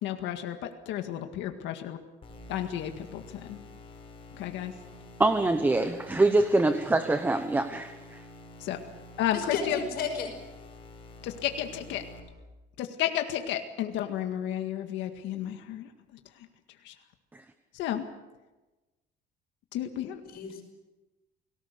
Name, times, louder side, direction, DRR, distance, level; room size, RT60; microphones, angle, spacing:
voice 1, 0.0-2.0 2.5-3.6 4.3-4.7 8.6-8.8 9.2-9.8 11.2-12.0 12.8-15.9 16.8-16.9 17.7-18.1 19.7-20.2, left 11 dB, 85° left, 6 dB, 1.9 m, -32 dB
sound 1, 2.2-12.2, left 2 dB, 30° left, 5.4 m, -49 dB
voice 2, 5.2-8.2 17.3-17.4, right 2 dB, 10° right, 9 dB, 1.0 m, -24 dB
voice 3, 9.3-10.3 20.3-20.6, left 5 dB, 55° left, 5 dB, 5.5 m, -32 dB
29.5 x 18.5 x 6.7 m, 1.1 s
cardioid pair, 170°, 19 cm